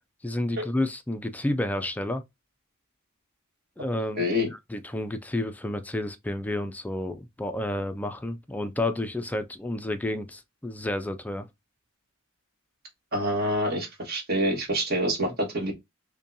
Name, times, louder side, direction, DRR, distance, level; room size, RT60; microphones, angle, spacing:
voice 1, 0.2-2.2 3.8-4.2 4.5-11.5, left 1 dB, 5° left, 0.3 m, -30 dB
voice 2, 4.2-4.5 13.1-15.7, equal, 50° right, 1.5 m, -26 dB
5.4 x 2.2 x 2.6 m
head